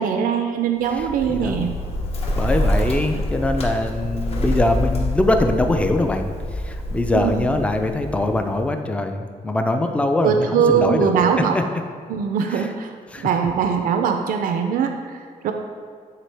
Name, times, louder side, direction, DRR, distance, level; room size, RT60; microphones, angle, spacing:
voice 1, 0.0-1.7 3.1-3.2 7.1-7.5 10.2-11.5 12.1-12.9 13.2-15.5, right 7 dB, 85° right, 5 dB, 0.5 m, -21 dB
Bird, 0.8-8.6, equal, 45° left, 0.9 m, -26 dB
voice 2, 1.0-1.6 2.3-6.3 6.5-11.1 11.5-11.6 12.5-12.7 13.1-13.3, left 2 dB, 10° left, 6 dB, 0.4 m, -22 dB
9.1 x 3.8 x 3.3 m, 2.1 s
wide cardioid pair, 155°, 14 cm